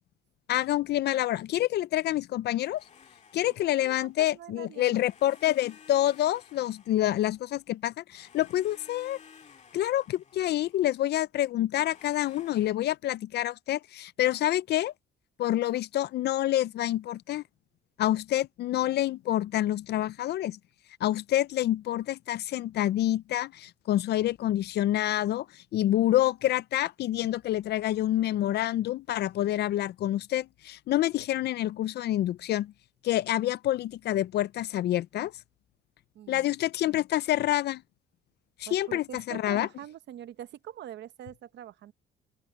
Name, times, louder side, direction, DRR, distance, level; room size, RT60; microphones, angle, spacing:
voice 1, 0.5-2.8 3.3-9.2 9.7-14.9 15.4-17.4 18.0-20.6 21.0-25.5 25.7-32.7 33.0-35.3 36.3-37.8 38.6-39.7, left 13 dB, 55° left, 0.4 m, -27 dB
Domestic sounds home sounds, 2.7-4.4 4.9-7.7 8.1-11.1 11.8-12.7, left 7 dB, 35° left, 1.8 m, -55 dB
voice 2, 3.7-5.0 36.1-36.5 38.7-41.9, right 11 dB, 60° right, 0.8 m, -44 dB
open air
cardioid pair, 160°, 21 cm